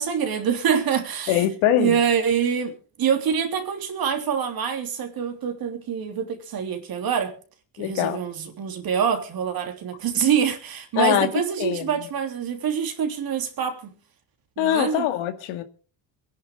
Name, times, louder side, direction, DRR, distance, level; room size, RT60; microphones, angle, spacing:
voice 1, 0.0-1.4 1.8-7.3 7.8-13.9 14.6-15.0, right 7 dB, 50° right, 3.2 m, -25 dB
voice 2, 1.3-2.0 7.8-8.2 11.0-11.3 11.6-12.1 14.6-15.6, left 11 dB, 85° left, 2.1 m, -23 dB
23.5 x 10.5 x 3.7 m
cardioid pair, 115°, 46 cm